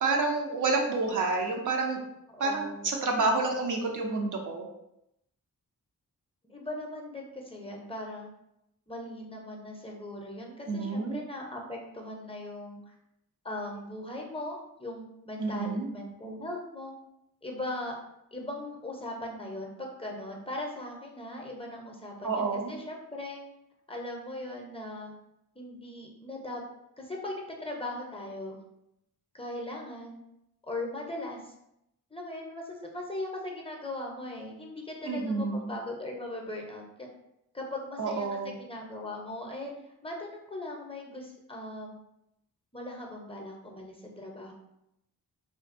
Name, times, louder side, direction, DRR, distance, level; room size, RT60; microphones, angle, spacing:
voice 1, 0.0-2.0 2.4-4.7 10.7-11.2 15.4-15.9 22.2-22.7 35.0-35.6 38.0-38.6, right 3 dB, 55° right, 2 dB, 0.5 m, -29 dB
voice 2, 2.3-3.0 6.5-8.3 8.9-12.9 13.4-16.9 17.4-18.0 18.3-23.4 23.9-25.1 25.6-26.6 27.0-28.6 29.3-30.2 30.6-31.5 32.1-37.1 37.5-39.8 40.0-42.0 42.7-44.5, left 1 dB, 15° left, 0 dB, 0.6 m, -39 dB
2.5 x 2.2 x 2.5 m, 0.83 s
cardioid pair, 50°, 36 cm